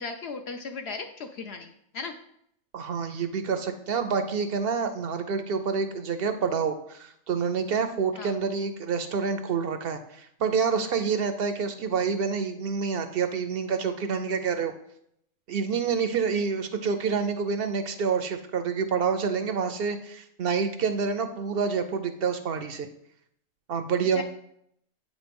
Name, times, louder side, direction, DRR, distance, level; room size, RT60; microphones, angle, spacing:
voice 1, 0.0-2.1 8.1-8.3 24.1-24.2, left 4 dB, 60° left, 5 dB, 0.7 m, -37 dB
voice 2, 2.7-14.7 15.5-22.9 23.7-24.2, right 5 dB, 60° right, 8 dB, 0.6 m, -28 dB
8.3 x 3.1 x 5.2 m, 0.72 s
omnidirectional pair, 1.4 m